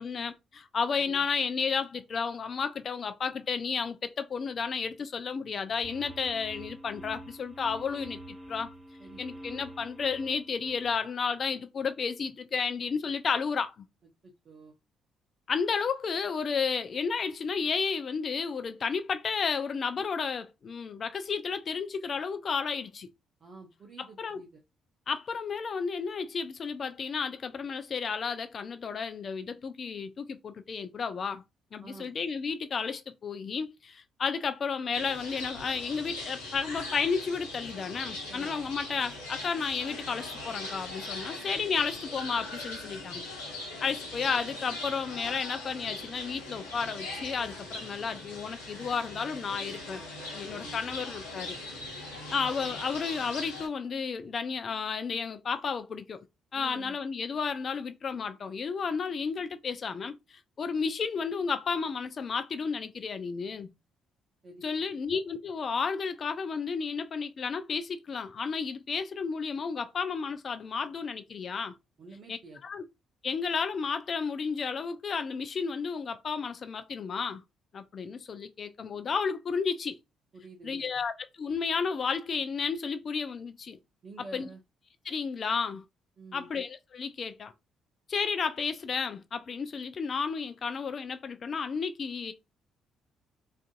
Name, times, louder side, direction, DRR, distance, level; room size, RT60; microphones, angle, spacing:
voice 1, 0.0-8.7 9.2-13.8 15.5-23.1 24.0-24.4 25.1-31.4 31.7-43.2 43.8-50.0 50.3-51.6 51.9-52.0 52.3-56.2 56.5-63.7 64.6-71.7 72.3-72.4 72.6-72.8 73.2-77.4 77.7-80.0 80.6-83.8 84.3-84.5 85.1-85.8 86.3-87.5 88.1-92.3, left 5 dB, 45° left, 0.3 m, -32 dB
sound 1, 5.8-10.9, right 1 dB, 15° right, 1.2 m, -46 dB
voice 2, 9.0-9.5 14.2-14.8 23.4-24.6 31.8-32.1 38.3-38.5 50.5-50.8 56.5-57.0 64.4-64.7 72.0-72.6 80.3-81.0 84.0-84.6 86.2-86.5, right 3 dB, 45° right, 0.6 m, -49 dB
sound 2, 34.9-53.7, left 2 dB, 85° left, 0.8 m, -40 dB
2.5 x 2.4 x 2.3 m
figure-of-eight pair, 45°, 0 cm